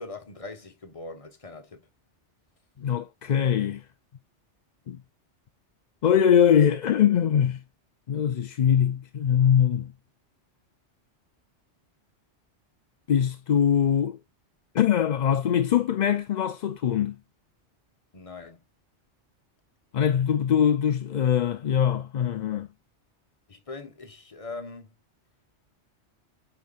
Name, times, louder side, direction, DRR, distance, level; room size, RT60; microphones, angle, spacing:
voice 1, 0.0-1.9 18.1-18.6 23.5-24.9, left 3 dB, 30° left, 1.2 m, -41 dB
voice 2, 2.8-3.8 4.9-5.0 6.0-7.6 8.1-9.9 13.1-14.2 14.7-17.2 19.9-22.7, left 9 dB, 55° left, 0.5 m, -22 dB
9.1 x 4.6 x 2.4 m
omnidirectional pair, 1.2 m